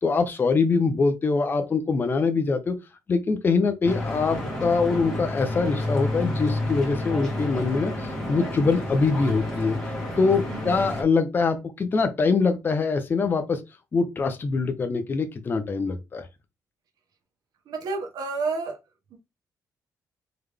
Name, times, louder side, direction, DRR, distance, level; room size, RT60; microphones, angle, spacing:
voice 1, 0.0-2.8 3.1-9.8 10.2-13.6 13.9-16.3, left 4 dB, 30° left, 0.6 m, -23 dB
Stream / Boat Water vehicle, 3.8-11.0, left 1 dB, 10° left, 1.8 m, -30 dB
voice 2, 17.7-18.8 19.1-19.2, right 4 dB, 75° right, 1.2 m, -30 dB
3.8 x 3.3 x 3.4 m
cardioid pair, 140°, 7 cm